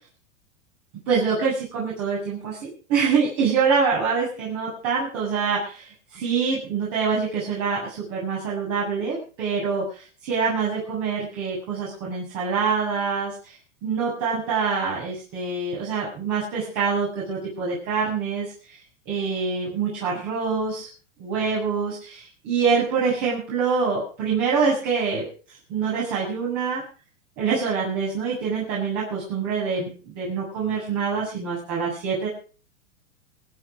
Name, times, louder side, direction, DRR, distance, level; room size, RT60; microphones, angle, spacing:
voice 1, 1.1-13.6 13.8-18.5 19.1-20.9 21.2-26.8 27.4-32.3, right 5 dB, 45° right, -5 dB, 7.7 m, -25 dB
26.5 x 9.2 x 5.1 m, 0.39 s
hypercardioid pair, 120°, 38 cm